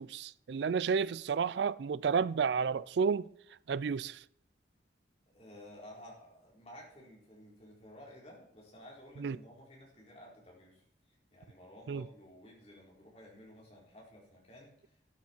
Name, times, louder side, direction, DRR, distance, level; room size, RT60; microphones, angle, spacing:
voice 1, 0.0-3.3 3.7-4.2 9.2-9.4 11.9-12.0, right 6 dB, 75° right, 0.4 m, -31 dB
voice 2, 5.3-10.8 11.3-15.1, equal, 35° left, 4.1 m, -54 dB
12.5 x 9.7 x 4.5 m
head